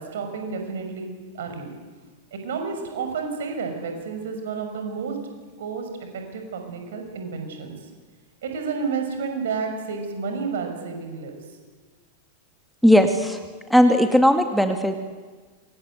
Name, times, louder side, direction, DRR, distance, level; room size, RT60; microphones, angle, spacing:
voice 1, 0.0-1.8 2.3-5.1 5.6-7.8 8.4-11.5, right 5 dB, 60° right, 5 dB, 6.3 m, -31 dB
voice 2, 12.8-13.4 13.7-15.0, equal, ahead, 5 dB, 2.2 m, -17 dB
27.5 x 25.0 x 8.2 m, 1.4 s
figure-of-eight pair, 90°, 0 cm